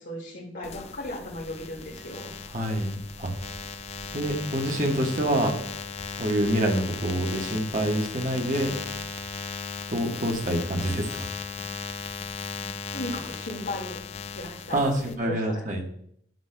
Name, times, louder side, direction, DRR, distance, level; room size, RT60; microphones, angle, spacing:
voice 1, 0.0-2.3 12.9-14.0 14.3-15.7, left 1 dB, 85° left, -7 dB, 2.0 m, -36 dB
sound 1, 0.6-15.2, left 5 dB, 35° left, 0.4 m, -37 dB
voice 2, 2.5-3.3 4.1-5.6 6.1-8.7 9.9-11.1 14.7-15.8, right 1 dB, 45° right, 1 dB, 1.3 m, -26 dB
12.0 x 6.2 x 2.2 m, 0.66 s
head